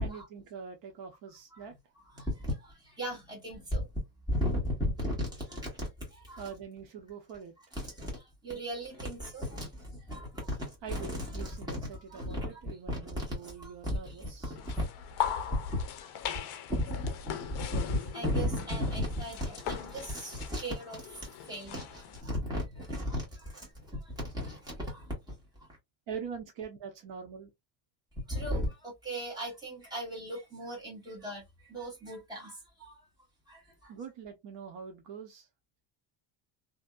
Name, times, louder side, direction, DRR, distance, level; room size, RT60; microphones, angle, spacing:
voice 1, 0.0-1.7 6.4-7.5 10.8-14.5 26.1-27.5 33.9-35.5, right 6 dB, 60° right, 0.8 m, -44 dB
voice 2, 2.1-3.9 4.3-6.4 7.7-14.8 15.5-15.6 16.0-16.1 16.7-25.3 28.3-33.0 33.5-33.9, equal, 10° right, 1.3 m, -36 dB
sound 1, 14.6-22.2, left 9 dB, 55° left, 0.5 m, -39 dB
2.8 x 2.5 x 2.2 m
cardioid pair, 175°, 49 cm